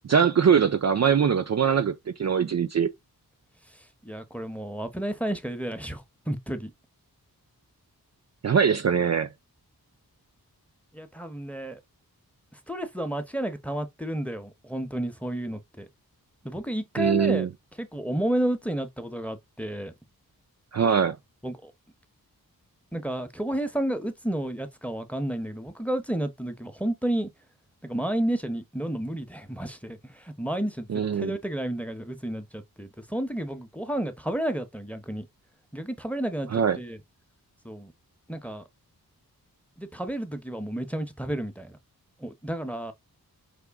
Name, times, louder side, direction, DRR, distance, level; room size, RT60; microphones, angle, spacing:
voice 1, 0.0-2.9 8.4-9.3 17.0-17.5 20.7-21.2 30.9-31.3 36.5-36.8, right 7 dB, 45° right, 0.4 m, -22 dB
voice 2, 4.0-6.7 10.9-11.8 12.7-15.9 16.4-17.5 17.8-19.9 21.4-21.7 22.9-27.3 27.8-35.3 35.7-37.0 37.6-37.9 38.3-38.6 39.8-41.8 42.2-42.9, right 1 dB, 5° left, 0.7 m, -31 dB
4.9 x 2.2 x 3.4 m
wide cardioid pair, 65°, 38 cm